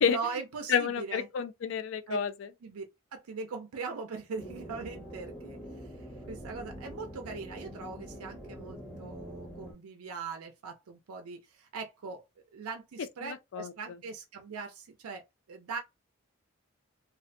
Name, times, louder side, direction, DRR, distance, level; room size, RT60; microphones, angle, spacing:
voice 1, 0.0-1.3 2.1-2.2 2.6-2.8 3.1-5.6 6.0-12.2 12.5-15.2 15.5-15.8, right 5 dB, 85° right, 0.4 m, -40 dB
voice 2, 0.7-2.5 13.2-13.7, left 7 dB, 60° left, 0.3 m, -30 dB
sound 1, 4.4-9.7, equal, 5° left, 0.5 m, -45 dB
2.4 x 2.1 x 2.5 m
head